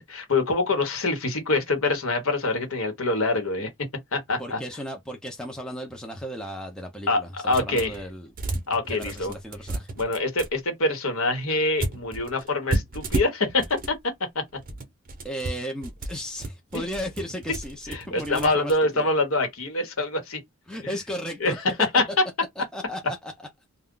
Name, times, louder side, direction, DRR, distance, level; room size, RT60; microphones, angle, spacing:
voice 1, 0.0-3.7 4.1-4.6 7.1-7.9 8.7-9.3 9.9-14.0 14.3-14.4 16.7-16.8 17.9-20.4 20.8-20.9 21.4-21.5 21.9-22.1, left 2 dB, 75° left, 1.1 m, -25 dB
voice 2, 4.4-8.3 8.9-9.9 15.2-19.1 20.7-21.9 22.6-23.5, equal, 5° left, 0.5 m, -35 dB
sound 1, 7.5-8.0 8.3-10.5 11.8-14.0 14.5-18.7, right 2 dB, 40° right, 0.7 m, -32 dB
2.4 x 2.2 x 3.7 m
head